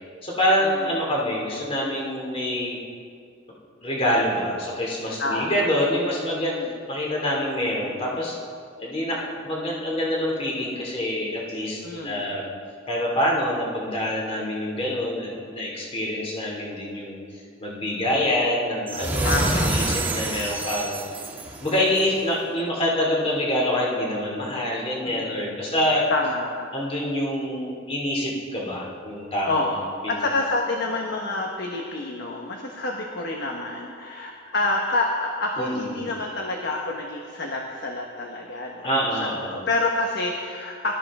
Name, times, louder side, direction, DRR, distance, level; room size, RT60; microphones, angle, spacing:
voice 1, 0.2-2.8 3.8-6.5 6.9-8.4 8.8-12.4 12.9-17.2 17.6-21.0 21.6-26.0 26.7-29.7 30.0-30.2 35.6-36.1 38.8-39.6, left 1 dB, 30° left, -3 dB, 2.7 m, -26 dB
voice 2, 5.2-5.7 6.5-6.7 11.8-12.3 19.2-20.0 25.0-25.4 26.1-26.7 29.4-29.8 30.1-40.9, left 2 dB, 60° left, 0 dB, 1.4 m, -28 dB
sound 1, 18.9-22.2, right 2 dB, 10° right, 2.1 m, -27 dB
22.0 x 13.5 x 3.7 m, 2.2 s
head